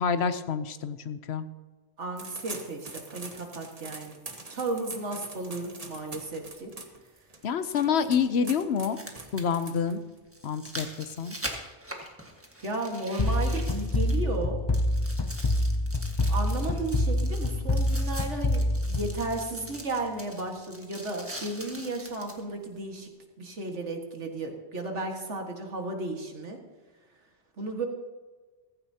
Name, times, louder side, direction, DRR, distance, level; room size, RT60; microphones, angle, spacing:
voice 1, 0.0-1.4 7.4-9.0 9.3-10.0 10.4-11.4, left 6 dB, 65° left, 11 dB, 1.0 m, -27 dB
voice 2, 2.0-4.2 4.5-6.7 12.6-14.6 16.3-23.1 23.4-26.6 27.6-27.9, right 2 dB, 85° right, 2 dB, 2.1 m, -34 dB
sound 1, 2.2-10.2, right 3 dB, 35° right, 1.3 m, -44 dB
Opening Lindt Chocolate Bar, 7.5-7.6 8.7-14.4 14.7-22.4 23.0-23.1, right 1 dB, 10° right, 1.6 m, -43 dB
sound 2, 13.2-19.8, left 1 dB, 30° left, 0.5 m, -27 dB
15.0 x 15.0 x 2.9 m, 1.3 s
omnidirectional pair, 1.2 m